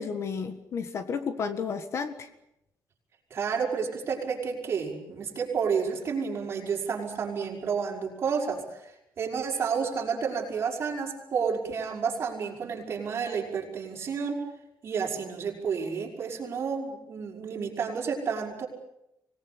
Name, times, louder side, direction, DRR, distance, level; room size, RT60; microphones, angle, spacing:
voice 1, 0.0-2.3, left 6 dB, 40° left, 10 dB, 1.6 m, -32 dB
voice 2, 3.3-14.4 14.8-18.7, right 6 dB, 35° right, 0 dB, 5.8 m, -30 dB
25.5 x 19.5 x 8.6 m, 0.84 s
cardioid pair, 180°, 7 cm